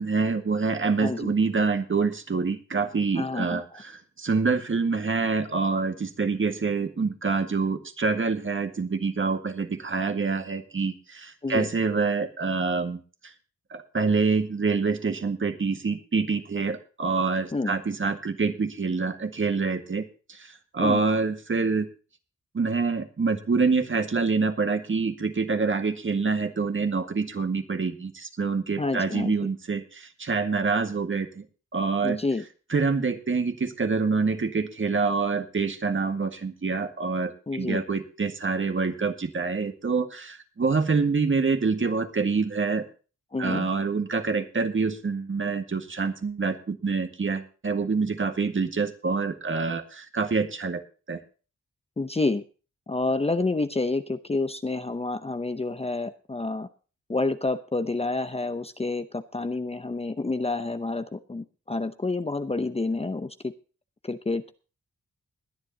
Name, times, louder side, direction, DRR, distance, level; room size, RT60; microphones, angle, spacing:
voice 1, 0.0-13.3 13.7-21.9 22.5-31.4 31.7-32.2 32.7-42.9 43.4-50.8 51.1-51.2, right 4 dB, 40° right, 7 dB, 1.8 m, -26 dB
voice 2, 1.0-1.3 3.2-3.6 11.4-11.7 17.5-17.7 20.8-21.0 28.8-29.3 32.0-32.4 37.5-37.8 43.3-43.7 52.0-52.4 52.9-56.7 57.1-63.5 64.0-64.4, left 3 dB, 20° left, 10 dB, 0.7 m, -28 dB
21.0 x 10.5 x 2.9 m, 0.35 s
wide cardioid pair, 110°, 30 cm